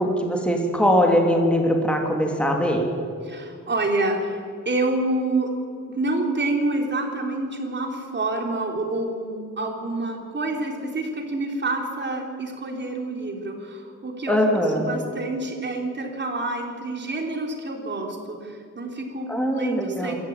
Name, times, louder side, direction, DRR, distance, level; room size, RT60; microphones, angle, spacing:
voice 1, 0.0-2.9 14.3-14.9 19.3-20.2, equal, 5° left, 1 dB, 3.0 m, -21 dB
voice 2, 3.2-5.5 5.9-14.4 14.8-20.2, right 2 dB, 35° right, 2 dB, 4.0 m, -28 dB
25.0 x 14.5 x 9.0 m, 2.3 s
wide cardioid pair, 120°, 31 cm